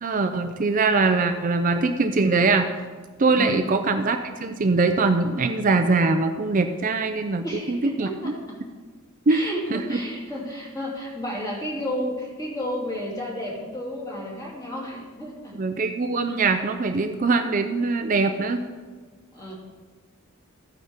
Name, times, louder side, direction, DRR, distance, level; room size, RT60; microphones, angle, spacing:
voice 1, 0.0-2.7 3.2-8.1 9.3-9.8 15.6-18.6, right 3 dB, 40° right, 7 dB, 0.5 m, -22 dB
voice 2, 3.3-3.7 7.4-8.6 9.3-15.5 19.3-19.5, equal, 20° left, -4 dB, 2.9 m, -32 dB
14.0 x 9.5 x 3.6 m, 1.4 s
head